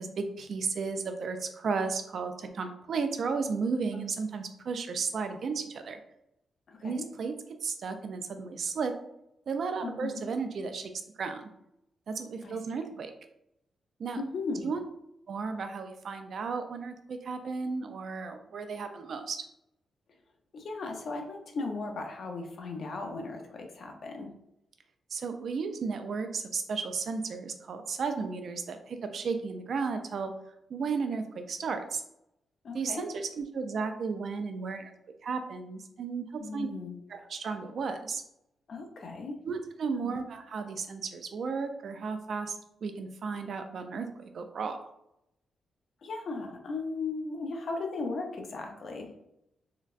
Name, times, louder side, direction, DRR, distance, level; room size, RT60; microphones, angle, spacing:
voice 1, 0.0-6.0 6.8-7.3 7.6-8.9 9.5-10.9 11.2-11.5 12.1-13.1 14.0-14.2 14.6-14.8 15.3-19.4 25.1-30.3 30.7-32.0 32.7-34.9 35.2-36.7 37.1-38.2 39.4-42.6 42.8-44.8, right 5 dB, 50° right, 7 dB, 0.3 m, -34 dB
voice 2, 6.7-7.1 9.8-10.2 12.4-12.6 14.2-14.7 20.5-24.3 32.6-33.1 36.4-37.0 38.7-39.4 39.9-40.2 46.0-49.1, left 3 dB, 50° left, 3 dB, 0.5 m, -37 dB
3.8 x 2.1 x 2.4 m, 0.80 s
wide cardioid pair, 160°, 0 cm